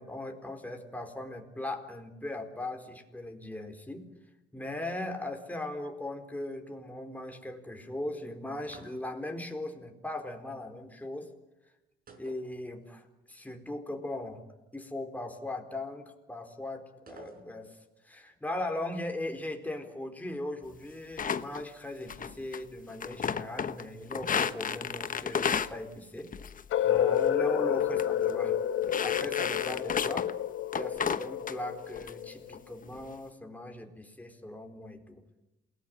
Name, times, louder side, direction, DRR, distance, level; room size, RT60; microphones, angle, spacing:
voice 1, 0.0-4.1 4.5-11.3 12.2-14.4 14.7-17.8 18.0-26.3 26.8-28.6 29.0-30.3 30.7-35.2, left 1 dB, 10° left, 4 dB, 4.3 m, -39 dB
sound 1, 8.6-9.4 12.1-13.1 13.4-13.5 17.1-17.9, right 4 dB, 45° right, 5.0 m, -53 dB
sound 2, 21.2-21.6 22.1-22.6 22.9-23.8 24.1-25.7 26.3-26.7 26.9-27.3 27.8-28.0 28.3-28.4 28.8-30.3 30.7-31.5 32.0-32.1 32.5-33.0, left 7 dB, 45° left, 1.1 m, -32 dB
sound 3, 26.7-32.6, left 10 dB, 80° left, 1.3 m, -29 dB
28.0 x 19.0 x 9.8 m, 0.98 s
cardioid pair, 90°, 20 cm